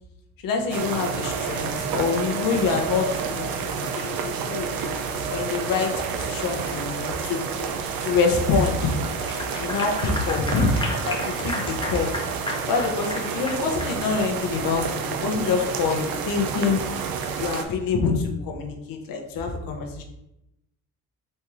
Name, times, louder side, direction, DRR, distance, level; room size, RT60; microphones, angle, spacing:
voice 1, 0.4-3.5 3.9-4.9 5.3-7.5 8.0-8.9 9.6-10.7 11.0-12.1 12.7-16.8 17.4-20.0, left 5 dB, 65° left, 2 dB, 1.0 m, -26 dB
sound 1, 0.7-17.6, right 6 dB, 70° right, 0.7 m, -29 dB
Clapping / Applause, 9.1-14.0, left 2 dB, 15° left, 0.9 m, -33 dB
4.4 x 3.4 x 3.0 m, 0.86 s
supercardioid pair, 65°, 37 cm